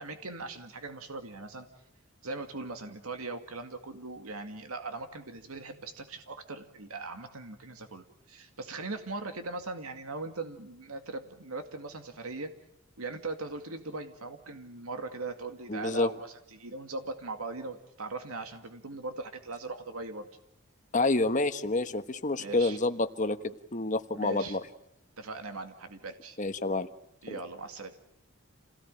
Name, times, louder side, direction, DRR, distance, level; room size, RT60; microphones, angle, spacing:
voice 1, 0.0-1.7 2.2-12.5 13.0-20.3 22.4-22.8 24.1-24.6 25.2-26.4 27.2-27.9, right 3 dB, 85° right, 7 dB, 2.2 m, -40 dB
voice 2, 15.7-16.1 20.9-24.6 26.4-26.9 27.3-27.4, left 2 dB, 35° left, 8 dB, 1.2 m, -28 dB
28.5 x 17.5 x 9.0 m, 0.78 s
head